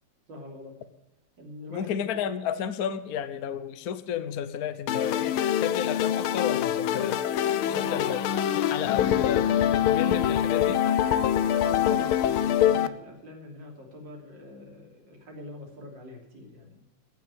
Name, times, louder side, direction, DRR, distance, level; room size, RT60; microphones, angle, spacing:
voice 1, 0.3-0.7 1.4-2.1 7.6-8.9 11.5-16.8, left 1 dB, 55° right, 0 dB, 3.7 m, -43 dB
voice 2, 1.7-7.2 7.7-8.2 8.5-10.8, left 9 dB, 55° left, 12 dB, 1.2 m, -32 dB
sound 1, 4.9-12.9, left 10 dB, 75° left, 1.6 m, -24 dB
15.0 x 6.4 x 8.8 m, 0.92 s
omnidirectional pair, 2.4 m